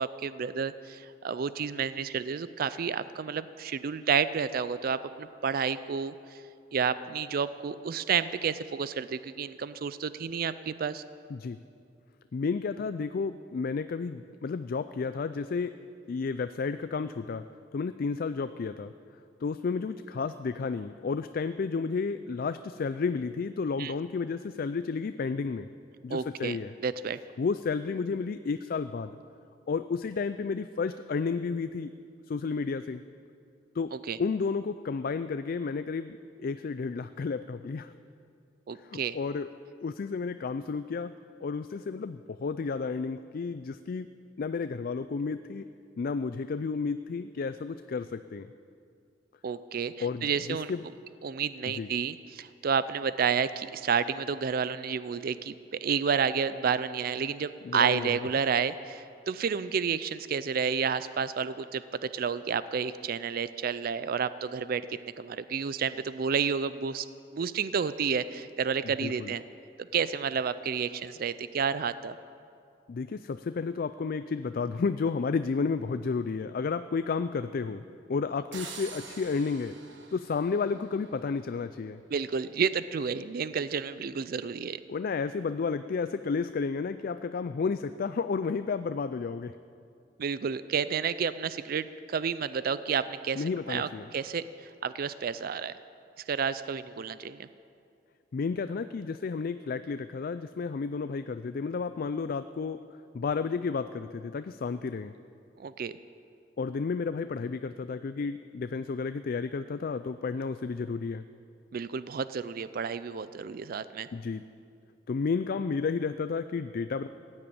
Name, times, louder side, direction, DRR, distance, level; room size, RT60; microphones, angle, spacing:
voice 1, 0.0-6.1 6.7-11.0 23.8-23.9 26.1-27.2 34.1-34.2 38.7-39.2 49.4-50.7 51.2-55.5 55.8-67.1 67.3-69.4 69.8-72.2 82.1-84.8 90.2-94.4 94.8-95.8 96.3-97.5 105.6-105.9 111.7-114.1, right 6 dB, 55° right, 15 dB, 0.4 m, -30 dB
voice 2, 12.3-15.7 16.1-17.5 17.7-18.9 19.4-25.7 26.0-26.7 27.4-29.2 29.7-31.9 32.3-33.0 33.7-37.9 38.7-39.5 39.8-41.1 41.4-44.1 44.4-45.7 46.0-48.5 50.0-50.8 51.7-51.9 57.6-58.2 69.0-69.3 72.9-77.8 78.1-79.8 80.1-82.0 84.9-89.5 93.4-94.1 98.3-102.8 103.1-105.2 106.6-111.2 114.1-114.4 115.1-117.1, left 4 dB, 55° left, 11 dB, 0.4 m, -32 dB
sound 1, 78.5-81.4, right 5 dB, 85° right, 1.5 m, -46 dB
15.5 x 9.7 x 8.7 m, 2.4 s
head